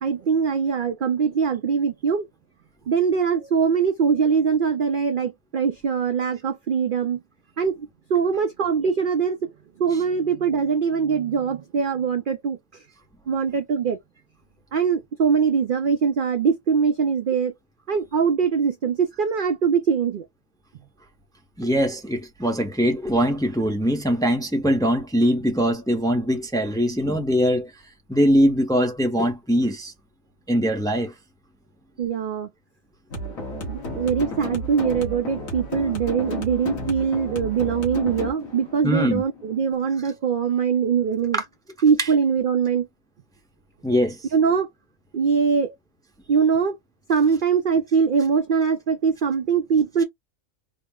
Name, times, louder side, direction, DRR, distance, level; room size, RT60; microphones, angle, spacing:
voice 1, 0.0-2.3 2.9-7.2 7.6-9.5 9.8-12.8 13.3-14.0 14.7-17.5 17.9-20.3 32.0-32.5 33.6-41.4 41.8-42.9 44.3-44.7 45.1-45.7 46.3-46.8 47.1-50.0, right 6 dB, 60° right, 0.5 m, -22 dB
voice 2, 21.6-27.7 28.1-29.9 30.5-31.1 38.8-39.2 41.3-41.4 43.8-44.2, equal, 5° left, 0.6 m, -22 dB
sound 1, 33.1-40.1, left 1 dB, 85° left, 1.8 m, -32 dB
3.9 x 2.0 x 3.4 m
omnidirectional pair, 1.4 m